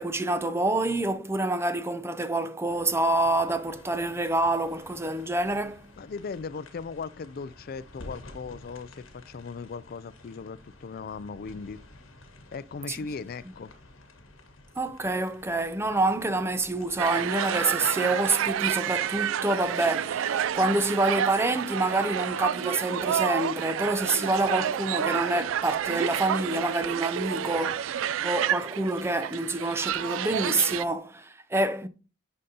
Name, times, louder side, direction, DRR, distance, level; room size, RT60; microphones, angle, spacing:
voice 1, 0.0-5.9 12.9-13.1 14.8-31.9, right 2 dB, 10° right, 0.5 m, -27 dB
sound 1, 2.7-17.0, left 2 dB, 80° left, 1.5 m, -51 dB
voice 2, 6.0-11.8 12.5-13.7, left 5 dB, 45° left, 0.4 m, -38 dB
sound 2, 17.0-30.8, right 9 dB, 75° right, 0.3 m, -29 dB
9.9 x 5.3 x 2.8 m
head